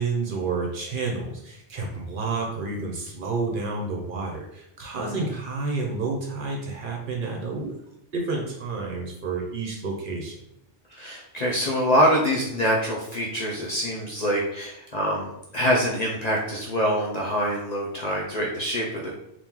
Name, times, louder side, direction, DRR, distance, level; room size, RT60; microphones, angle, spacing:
voice 1, 0.0-7.7 8.1-10.3, right 3 dB, 55° right, 0 dB, 0.7 m, -30 dB
voice 2, 10.9-15.3 15.5-19.1, equal, 50° left, -3 dB, 0.5 m, -25 dB
2.9 x 2.5 x 3.6 m, 0.78 s
omnidirectional pair, 1.2 m